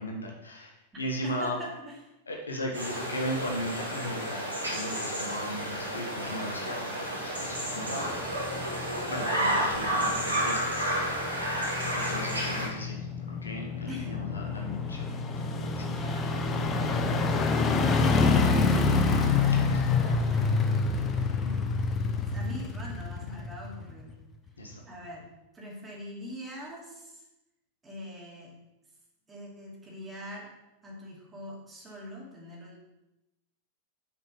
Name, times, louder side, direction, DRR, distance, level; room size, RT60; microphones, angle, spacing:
voice 1, 0.0-1.6 2.3-8.5 9.1-10.7 11.9-15.2 15.4-15.8 19.0-20.2 24.6-24.8, equal, 75° left, 1 dB, 1.5 m, -37 dB
voice 2, 1.2-2.0 9.3-10.2 13.9-14.1 15.8-18.5 20.0-20.5 21.4-24.1 24.8-25.3 25.5-27.2 27.8-28.5 29.3-30.5 30.8-32.8, left 1 dB, 15° right, -3 dB, 2.6 m, -43 dB
sound 1, 2.7-12.7, right 1 dB, 80° right, 3.1 m, -31 dB
sound 2, 7.6-24.1 24.5-24.6, left 4 dB, 25° left, 0.9 m, -28 dB
6.9 x 5.8 x 5.6 m, 0.95 s
figure-of-eight pair, 90°, 0 cm